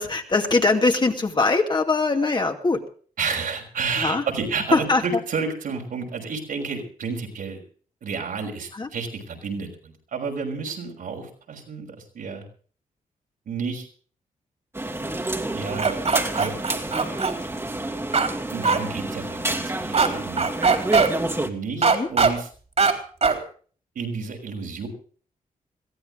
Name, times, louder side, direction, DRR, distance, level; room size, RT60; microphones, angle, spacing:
voice 1, 0.0-2.8 4.0-4.2 4.7-5.0 8.7-8.9 21.8-22.1, left 3 dB, 30° left, 4 dB, 2.3 m, -22 dB
voice 2, 3.2-7.6 8.0-12.4 13.5-13.9 15.5-16.0 16.4-16.6 18.5-20.5 21.4-22.5 23.9-24.9, right 5 dB, 75° right, 1 dB, 5.9 m, -30 dB
sound 1, 14.7-21.5, right 2 dB, 15° right, 2.3 m, -29 dB
sound 2, 15.8-17.3 18.1-18.3 18.6-18.8 19.9-20.1 20.4-21.1 21.8-22.3 22.8-22.9 23.2-23.4, right 5 dB, 50° right, 3.7 m, -19 dB
22.0 x 15.5 x 3.8 m, 0.43 s
cardioid pair, 80°, 14 cm